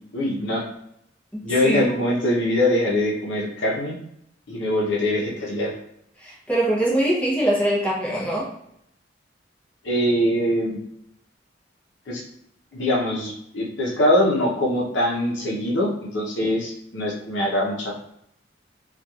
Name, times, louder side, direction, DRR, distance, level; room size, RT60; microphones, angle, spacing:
voice 1, 0.1-0.6 1.4-4.0 4.5-5.7 9.8-10.8 12.1-12.2 12.7-18.0, left 1 dB, 80° left, -2 dB, 0.7 m, -23 dB
voice 2, 1.3-1.9 6.2-8.5, right 1 dB, 5° left, -6 dB, 0.7 m, -23 dB
2.9 x 2.4 x 2.3 m, 0.74 s
head